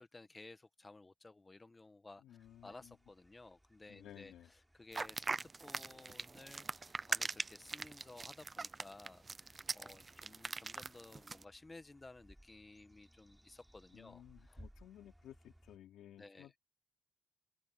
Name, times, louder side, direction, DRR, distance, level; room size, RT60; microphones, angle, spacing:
voice 1, 0.0-14.6 16.2-16.5, left 2 dB, 20° left, 1.5 m, -56 dB
voice 2, 2.2-3.0 3.9-4.5 13.9-16.6, left 11 dB, 80° left, 3.7 m, -57 dB
sound 1, 2.4-15.8, equal, 5° right, 7.5 m, -65 dB
sound 2, 4.9-11.4, right 4 dB, 30° right, 0.6 m, -41 dB
open air
cardioid pair, 90°, 0 cm